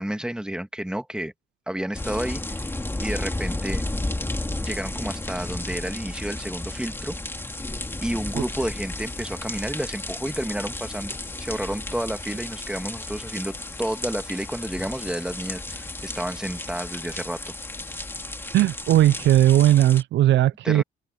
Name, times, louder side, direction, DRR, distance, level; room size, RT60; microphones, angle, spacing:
voice 1, 0.0-1.3 1.7-2.6 3.0-3.8 4.6-7.2 8.0-17.4 20.6-20.8, right 1 dB, 5° right, 1.7 m, -30 dB
sound 1, 1.9-20.0, left 2 dB, 10° left, 2.2 m, -33 dB
sound 2, 7.5-18.2, left 12 dB, 80° left, 6.1 m, -47 dB
voice 2, 18.5-20.8, right 13 dB, 65° right, 0.4 m, -18 dB
open air
cardioid pair, 90°, 20 cm